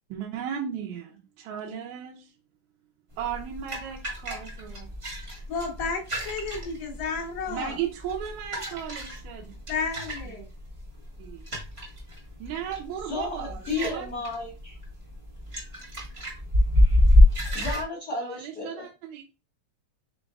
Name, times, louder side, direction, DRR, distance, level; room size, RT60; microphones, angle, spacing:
voice 1, 0.1-2.3 3.2-4.9 7.5-9.6 10.3-10.4 11.2-11.5 12.4-14.1 18.2-19.2, right 9 dB, 80° right, 1.9 m, -36 dB
sound 1, 3.1-17.8, left 1 dB, 40° right, 0.8 m, -26 dB
voice 2, 5.5-7.8 9.7-10.5, left 4 dB, 55° left, 1.2 m, -32 dB
voice 3, 13.0-14.8 17.5-18.8, left 3 dB, 75° left, 0.9 m, -33 dB
5.1 x 3.8 x 2.3 m
omnidirectional pair, 3.4 m